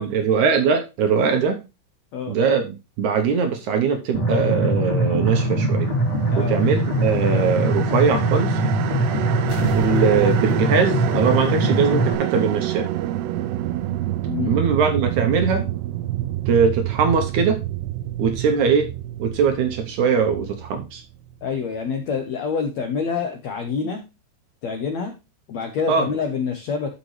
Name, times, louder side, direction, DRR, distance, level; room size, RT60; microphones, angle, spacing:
voice 1, 0.0-1.6 2.3-5.9 6.4-8.6 8.9-9.0 9.6-12.9 14.5-15.7 16.5-17.6 18.2-18.9 19.2-21.0 25.9-26.1, right 5 dB, 70° right, 6 dB, 1.8 m, -21 dB
sound 1, 4.1-12.1, right 2 dB, 20° left, 2.4 m, -22 dB
voice 2, 6.3-6.6 14.2-14.6 21.4-24.0 24.6-25.1 25.5-26.9, left 5 dB, 75° left, 4 dB, 1.6 m, -27 dB
sound 2, 6.4-21.6, right 14 dB, 85° right, 2.6 m, -28 dB
sound 3, 9.5-12.1 12.4-12.5, equal, 50° left, 1.5 m, -38 dB
13.0 x 5.3 x 3.2 m, 0.27 s
omnidirectional pair, 4.5 m